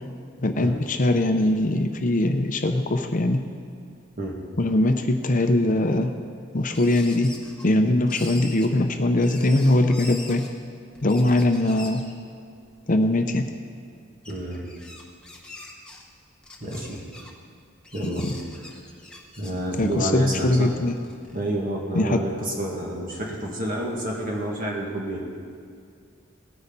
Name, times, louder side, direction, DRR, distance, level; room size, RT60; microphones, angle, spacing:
voice 1, 0.4-3.4 4.6-6.1 6.5-7.3 7.6-10.4 11.0-12.0 12.9-13.4 19.8-21.0 22.0-22.2, left 1 dB, 40° left, 6 dB, 0.7 m, -21 dB
sound 1, 6.7-7.8 8.1-8.7 9.2-10.5 10.9-12.1 12.6-12.7 13.4-13.5 14.2-16.0 16.4-17.3 17.8-20.1 20.7-21.5, left 2 dB, 5° left, 1.2 m, -43 dB
voice 2, 14.3-14.6 16.6-17.0 17.9-18.8 19.4-20.7 21.3-25.2, right 1 dB, 40° right, -2 dB, 2.2 m, -29 dB
17.5 x 9.7 x 4.1 m, 2.3 s
head